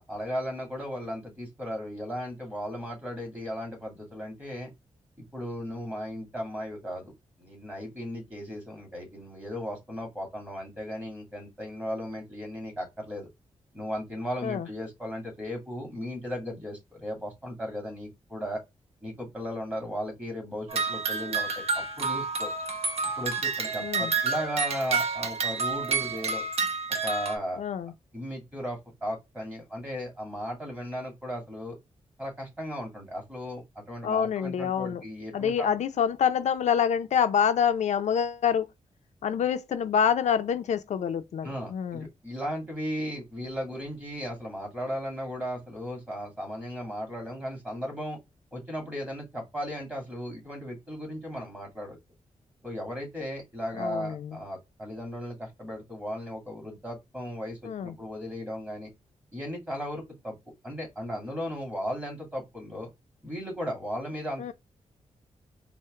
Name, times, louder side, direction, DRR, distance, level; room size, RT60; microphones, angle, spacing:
voice 1, 0.0-4.7 5.2-7.1 7.4-13.3 13.7-18.6 19.0-22.5 23.2-26.4 27.0-27.6 28.1-31.8 32.2-35.7 41.4-48.2 48.5-52.0 52.6-58.9 59.3-60.4 60.6-62.9 63.2-64.5, equal, 10° right, 2.3 m, -36 dB
sound 1, 20.7-27.4, right 4 dB, 60° right, 0.8 m, -29 dB
voice 2, 23.8-24.1 27.6-27.9 34.0-35.0 35.3-38.7 39.2-42.1 53.8-54.4 57.6-57.9 64.4-64.5, left 8 dB, 75° left, 0.4 m, -26 dB
4.3 x 2.0 x 3.6 m
wide cardioid pair, 150°, 12 cm